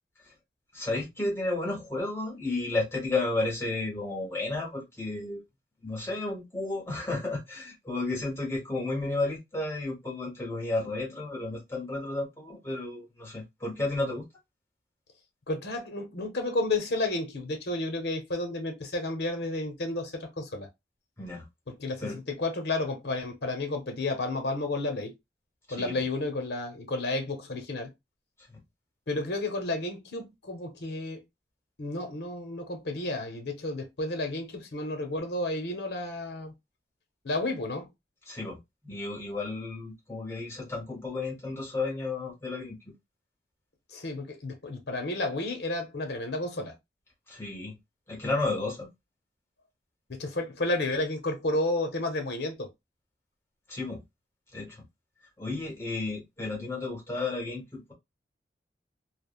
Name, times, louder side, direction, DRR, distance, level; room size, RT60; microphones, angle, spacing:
voice 1, 0.7-5.4 5.8-14.3 21.2-21.5 22.0-22.2 25.8-26.0 38.3-38.6 38.8-42.8 47.3-47.8 48.1-48.9 53.7-54.0 54.5-54.8 55.4-57.9, left 2 dB, 15° left, 0.9 m, -32 dB
voice 2, 15.5-20.7 21.7-25.1 25.7-27.9 29.1-31.2 31.8-36.5 37.2-37.9 43.9-46.7 50.1-52.7, left 2 dB, 75° left, 0.8 m, -31 dB
3.3 x 2.0 x 2.4 m
head